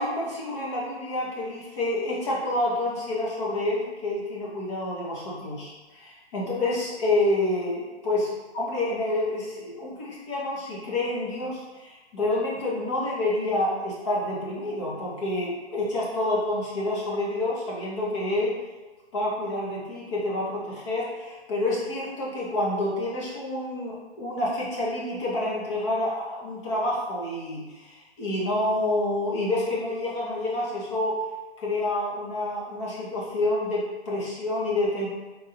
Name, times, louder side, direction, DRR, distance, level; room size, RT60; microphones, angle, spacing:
voice 1, 0.0-18.5 19.1-31.3 31.6-35.1, left 1 dB, 25° left, -5 dB, 1.0 m, -28 dB
4.0 x 2.6 x 4.2 m, 1.2 s
hypercardioid pair, 165°, 33 cm